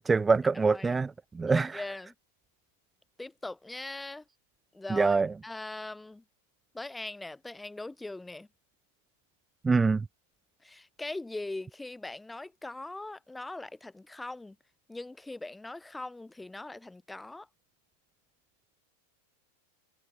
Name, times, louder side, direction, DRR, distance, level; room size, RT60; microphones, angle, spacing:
voice 1, 0.0-1.7 4.9-5.3 9.6-10.0, right 4 dB, 15° right, 0.4 m, -25 dB
voice 2, 0.5-1.0 1.5-2.1 3.2-4.2 4.7-6.2 6.7-8.5 10.6-14.6 14.9-17.5, left 2 dB, 5° left, 3.9 m, -41 dB
figure-of-eight pair, 90°, 0 cm